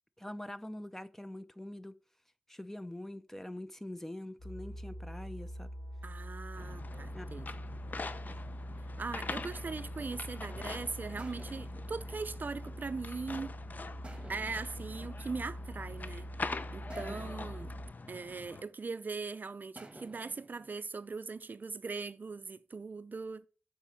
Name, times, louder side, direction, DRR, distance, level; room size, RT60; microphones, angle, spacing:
voice 1, 0.2-2.0 2.5-5.7 7.1-7.3 8.3-8.5 17.0-17.2, left 1 dB, 10° left, 0.6 m, -44 dB
sound 1, 4.4-17.9, equal, 70° left, 3.6 m, -44 dB
voice 2, 6.0-7.5 9.0-13.5 14.3-16.3 16.7-17.7 18.1-23.5, right 4 dB, 55° right, 0.4 m, -40 dB
sound 2, 6.6-18.6, left 3 dB, 50° left, 0.6 m, -44 dB
sound 3, 11.2-13.4 14.0-16.2 16.9-19.2 19.8-20.8, right 2 dB, 30° right, 1.5 m, -55 dB
7.3 x 4.9 x 6.9 m
wide cardioid pair, 95°, 4 cm